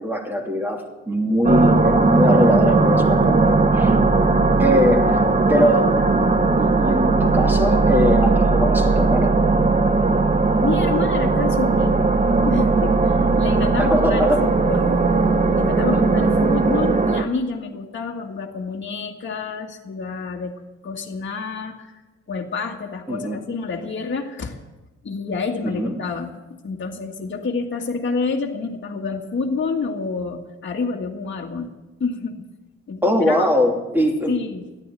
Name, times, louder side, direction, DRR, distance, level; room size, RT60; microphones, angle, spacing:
voice 1, 0.0-4.0 4.6-6.2 6.6-9.4 13.8-14.5 23.1-23.4 25.6-25.9 33.0-34.3, equal, 5° right, 2 dB, 2.9 m, -21 dB
sound 1, 1.4-17.2, right 3 dB, 25° right, 1.1 m, -18 dB
voice 2, 10.6-12.1 12.4-15.0 15.5-22.0 22.3-24.6 25.0-26.3 26.6-31.7 32.0-32.4 32.9-33.5 34.3-34.6, left 4 dB, 40° left, -1 dB, 1.9 m, -28 dB
13.5 x 10.5 x 8.3 m, 1.1 s
cardioid pair, 90°, 30 cm